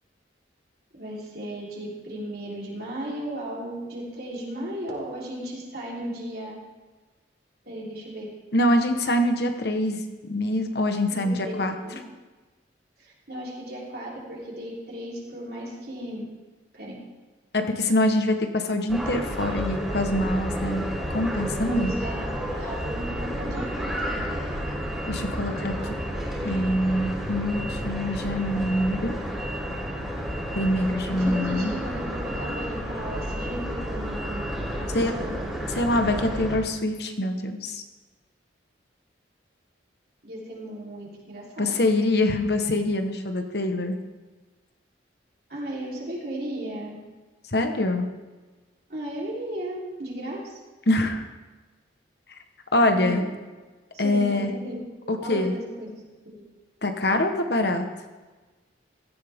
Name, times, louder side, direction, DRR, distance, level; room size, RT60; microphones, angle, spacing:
voice 1, 0.9-6.6 7.7-8.3 11.1-12.0 13.0-16.2 16.7-16.9 21.6-24.3 31.1-35.6 40.2-41.7 45.5-47.0 48.9-50.6 52.8-53.3 53.9-54.8 55.2-56.5, right 1 dB, 55° right, -4 dB, 3.8 m, -35 dB
voice 2, 8.5-11.8 17.5-21.9 25.1-26.0 26.4-29.2 30.5-31.8 34.9-35.1 35.7-37.8 41.6-44.0 47.5-48.1 50.9-51.3 52.7-53.2 54.0-54.5 55.1-55.5 56.8-57.9, left 1 dB, 60° left, 6 dB, 1.2 m, -24 dB
sound 1, 18.9-36.6, equal, ahead, 3.4 m, -31 dB
16.5 x 14.5 x 3.6 m, 1.3 s
head